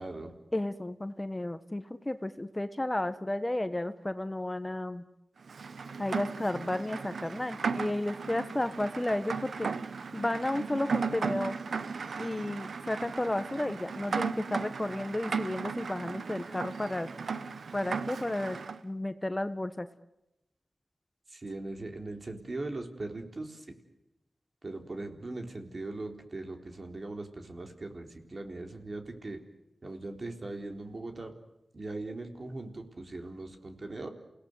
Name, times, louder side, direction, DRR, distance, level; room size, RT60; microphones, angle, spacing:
voice 1, 0.0-0.3 21.3-23.7 24.6-29.4 29.8-31.3 31.7-34.1, right 2 dB, 50° right, 4 dB, 4.0 m, -40 dB
voice 2, 0.5-5.0 6.0-9.7 10.1-11.6 12.2-17.1 17.7-19.9, left 1 dB, 20° left, 11 dB, 1.3 m, -33 dB
Rain, 5.5-18.8, right 5 dB, 80° right, 0.9 m, -36 dB
28.5 x 18.0 x 9.7 m, 0.91 s
cardioid pair, 40°, 0 cm